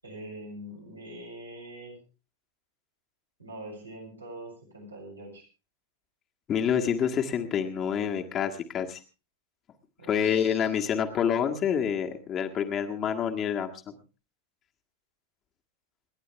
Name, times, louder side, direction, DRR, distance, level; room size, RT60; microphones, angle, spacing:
voice 1, 0.0-2.0 3.4-5.4 10.0-10.7, right 1 dB, 80° right, -1 dB, 7.2 m, -43 dB
voice 2, 6.5-9.0 10.1-13.7, left 8 dB, 30° left, 3 dB, 1.8 m, -27 dB
28.0 x 11.0 x 3.4 m, 0.32 s
figure-of-eight pair, 90°, 0 cm